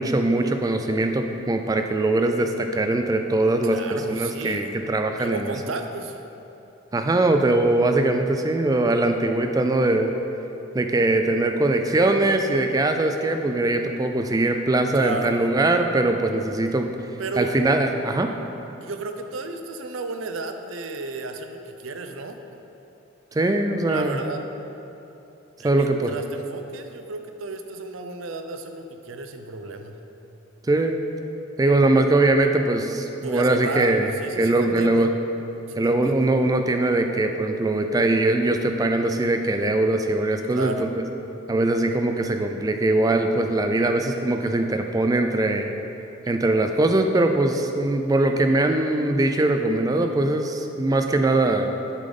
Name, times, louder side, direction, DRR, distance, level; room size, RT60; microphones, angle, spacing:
voice 1, 0.0-5.5 6.9-10.1 10.7-16.9 17.4-18.3 23.3-24.2 25.6-26.1 30.7-31.0 31.6-34.1 34.4-35.1 35.8-41.0 41.5-45.7 46.3-51.7, right 2 dB, 20° right, 5 dB, 0.3 m, -21 dB
voice 2, 3.6-4.7 5.2-6.2 14.9-15.4 17.2-17.5 18.8-22.4 23.9-24.4 25.6-30.0 33.2-35.1 35.7-36.4 40.5-40.9, right 3 dB, 85° right, 6 dB, 0.5 m, -33 dB
8.2 x 3.9 x 5.3 m, 2.9 s
head